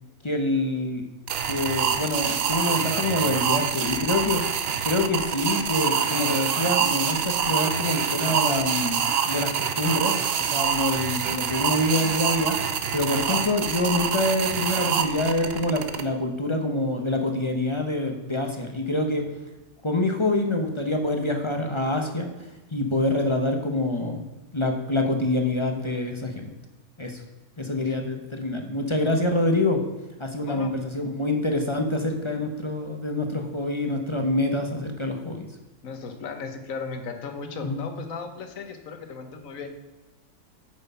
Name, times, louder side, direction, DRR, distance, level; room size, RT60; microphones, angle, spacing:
voice 1, 0.2-1.0 1.5-4.4 4.8-10.2 10.5-12.6 12.9-19.2 19.8-22.3 22.7-24.2 24.5-26.5 27.0-27.2 27.6-29.8 30.2-35.5 37.6-37.9, left 2 dB, 25° left, 4 dB, 0.8 m, -26 dB
sound 1, 1.3-16.0, right 7 dB, 55° right, 0.8 m, -26 dB
voice 2, 35.8-39.7, left 5 dB, 65° left, 6 dB, 1.5 m, -36 dB
8.8 x 6.4 x 5.6 m, 1.1 s
omnidirectional pair, 1.6 m